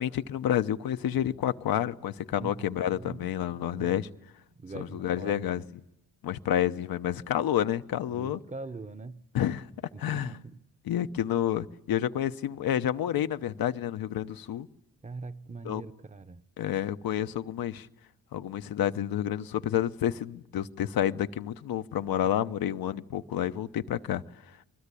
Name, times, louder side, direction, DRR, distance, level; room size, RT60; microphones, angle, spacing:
voice 1, 0.0-4.1 4.7-5.6 6.2-8.4 9.3-9.7 10.0-10.3 10.8-14.7 15.6-15.8 16.6-17.9 18.3-24.2, left 11 dB, 75° left, 0.9 m, -29 dB
voice 2, 2.3-3.3 3.7-4.2 4.6-5.7 8.1-9.2 9.9-10.6 15.0-16.5 22.2-22.7, right 3 dB, 20° right, 0.9 m, -43 dB
27.0 x 20.5 x 8.4 m
cardioid pair, 110°, 36 cm